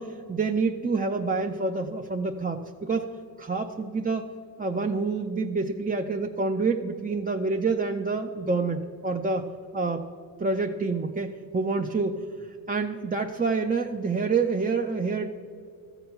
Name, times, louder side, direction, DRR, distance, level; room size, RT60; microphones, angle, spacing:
voice 1, 0.0-3.1 3.4-4.3 4.6-9.5 9.7-10.1 10.4-12.3 12.7-15.3, right 4 dB, 25° right, 3 dB, 0.5 m, -27 dB
13.5 x 7.0 x 5.7 m, 2.3 s
cardioid pair, 50°, 38 cm